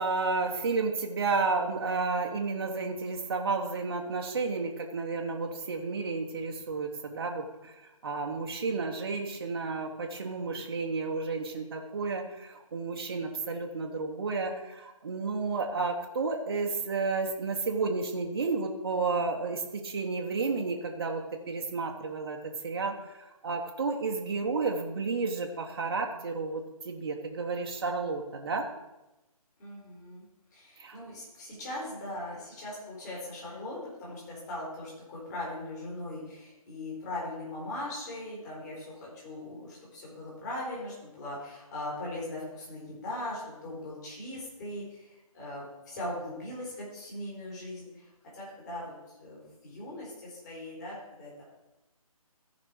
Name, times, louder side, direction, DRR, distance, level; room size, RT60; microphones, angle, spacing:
voice 1, 0.0-7.7 8.0-21.2 21.5-22.4 22.6-28.6 30.8-31.0, right 4 dB, 40° right, 1 dB, 0.9 m, -31 dB
voice 2, 29.6-30.2 30.5-48.1 48.3-51.4, left 1 dB, 30° left, -5 dB, 4.2 m, -40 dB
14.5 x 5.2 x 4.7 m, 1.0 s
figure-of-eight pair, 145°, 19 cm